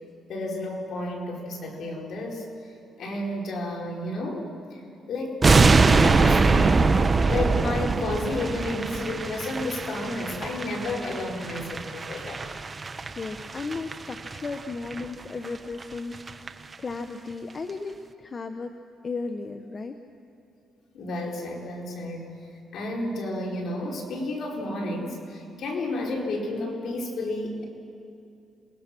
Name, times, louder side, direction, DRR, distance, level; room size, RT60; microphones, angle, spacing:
voice 1, 0.3-2.4 3.0-4.8 5.1-12.4 20.9-22.3 22.7-27.6, left 2 dB, 65° left, -1 dB, 4.5 m, -31 dB
sound 1, 5.4-14.6 14.9-15.0 15.4-15.5 15.8-15.9 16.1-16.5 16.7-16.8, right 4 dB, 30° right, 0.9 m, -23 dB
voice 2, 13.1-18.8 19.0-20.0, left 4 dB, 35° left, 7 dB, 1.0 m, -35 dB
27.5 x 19.5 x 6.0 m, 2.6 s
cardioid pair, 90°, 0 cm